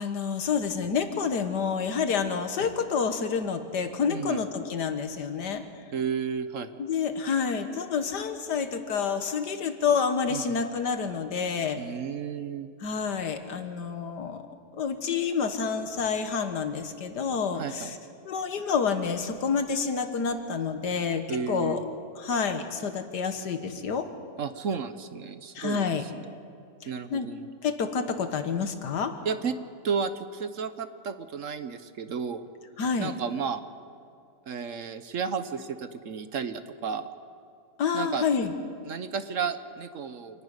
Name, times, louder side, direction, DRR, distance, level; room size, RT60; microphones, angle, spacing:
voice 1, 0.0-5.6 6.8-11.8 12.8-14.4 14.7-18.0 18.2-21.8 22.2-24.1 25.5-26.0 27.1-27.3 27.6-29.2 32.8-33.1 37.8-38.5, left 6 dB, 85° left, 8 dB, 2.0 m, -28 dB
voice 2, 4.1-4.4 5.9-6.8 10.3-10.6 11.8-12.7 17.5-17.9 21.3-21.8 24.4-26.1 26.9-27.5 29.2-29.5 29.8-32.4 33.0-33.6 34.5-37.1 37.9-38.2 38.8-40.4, right 6 dB, 55° right, 11 dB, 1.1 m, -32 dB
27.5 x 11.5 x 9.7 m, 2.3 s
omnidirectional pair, 1.7 m